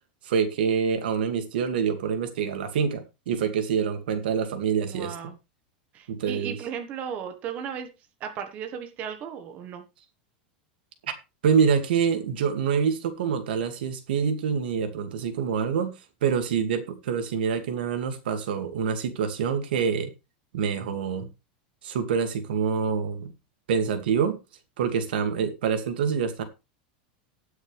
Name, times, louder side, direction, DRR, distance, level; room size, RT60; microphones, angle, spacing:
voice 1, 0.2-5.1 6.1-6.6 11.4-15.9 16.2-20.1 20.5-21.3 21.8-23.3 23.7-24.4 24.8-26.4, right 7 dB, 90° right, 2.4 m, -26 dB
voice 2, 4.8-5.4 5.9-7.9 8.2-9.8, right 8 dB, 30° right, 1.5 m, -35 dB
19.0 x 6.4 x 3.5 m
supercardioid pair, 170°, 5 cm